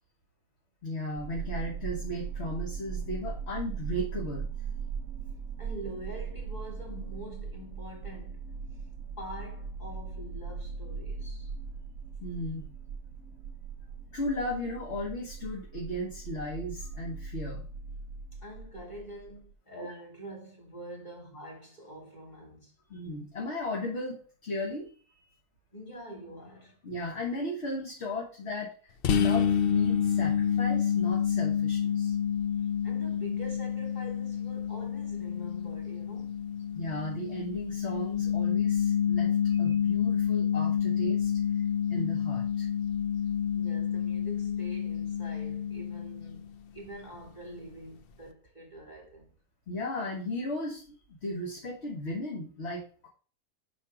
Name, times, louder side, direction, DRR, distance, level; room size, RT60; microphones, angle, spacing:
voice 1, 0.8-4.5 12.2-12.7 14.1-17.6 19.7-19.9 22.9-24.9 26.8-32.1 36.7-41.3 41.9-42.7 49.7-53.1, left 1 dB, 45° left, 1.6 m, -36 dB
sound 1, 1.2-19.5, right 5 dB, 60° right, 0.8 m, -39 dB
voice 2, 5.6-8.5 9.2-11.5 18.4-22.7 25.7-26.8 32.6-36.4 43.5-49.3, equal, 30° left, 3.4 m, -45 dB
sound 2, 29.0-46.5, left 8 dB, 75° left, 0.5 m, -28 dB
5.9 x 5.1 x 5.0 m
omnidirectional pair, 1.6 m